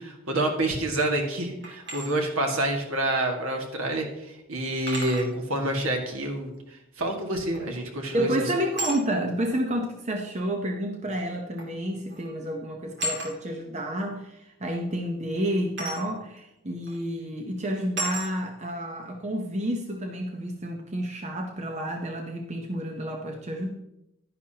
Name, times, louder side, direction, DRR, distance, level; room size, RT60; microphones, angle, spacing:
voice 1, 0.0-6.5 7.0-8.3, right 1 dB, 75° right, 2 dB, 1.9 m, -28 dB
sound 1, 1.6-2.1 3.6-3.7 4.9-5.3 7.5-7.9 8.8-9.0 10.2-10.3 11.6-11.8 12.1-12.3 13.0-13.3 15.8-16.0 16.8-17.0 18.0-18.3, right 1 dB, 55° right, 2.5 m, -33 dB
voice 2, 8.1-23.7, right 1 dB, 30° right, 2 dB, 0.8 m, -30 dB
11.0 x 10.5 x 2.9 m, 0.86 s
head